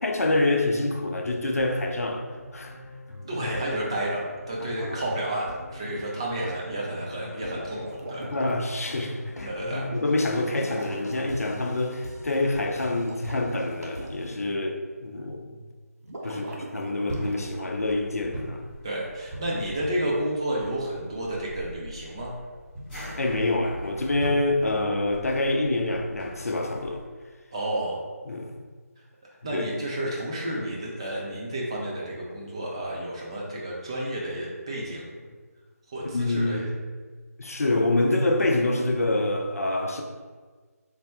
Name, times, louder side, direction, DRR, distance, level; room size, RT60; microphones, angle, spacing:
voice 1, 0.0-2.2 2.5-2.8 4.8-5.0 8.3-15.6 16.2-18.7 23.2-27.0 28.3-28.5 29.5-29.6 36.1-36.7 37.4-40.0, left 2 dB, 65° left, 2 dB, 0.5 m, -26 dB
sound 1, 1.5-14.4, left 1 dB, 90° left, 0.8 m, -43 dB
voice 2, 3.2-8.3 9.4-9.9 16.2-16.5 18.8-22.3 27.5-28.0 29.0-29.1 29.4-35.3 35.9-36.7, right 1 dB, 20° right, -4 dB, 0.4 m, -31 dB
sound 2, 7.5-8.6 10.5-11.1 12.9-14.1 16.0-17.7, right 1 dB, 70° right, 0.7 m, -41 dB
sound 3, 16.9-27.1, equal, 5° left, 0.8 m, -40 dB
3.4 x 2.1 x 4.2 m, 1.5 s
figure-of-eight pair, 165°, 9 cm